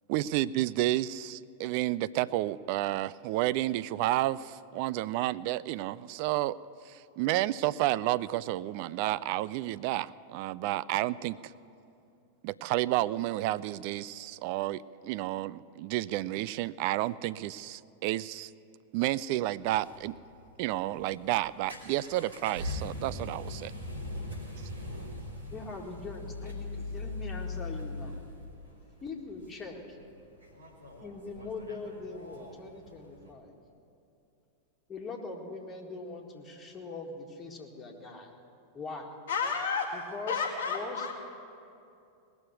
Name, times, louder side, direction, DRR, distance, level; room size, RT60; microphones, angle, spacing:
voice 1, 0.1-6.6 6.9-11.4 12.4-18.5 18.9-20.2 20.6-23.7, right 15 dB, 45° right, 17 dB, 0.3 m, -31 dB
sound 1, 19.4-33.3, left 2 dB, 75° right, 2.3 m, -41 dB
voice 2, 25.5-28.1 29.0-30.0 31.0-33.5 34.9-38.3 38.7-39.1 39.9-41.1, left 3 dB, 20° left, 0 dB, 2.0 m, -41 dB
voice 3, 39.3-39.9 40.3-41.1, left 6 dB, 55° left, 0 dB, 1.1 m, -31 dB
19.0 x 7.1 x 9.4 m, 2.6 s
figure-of-eight pair, 90°, 0 cm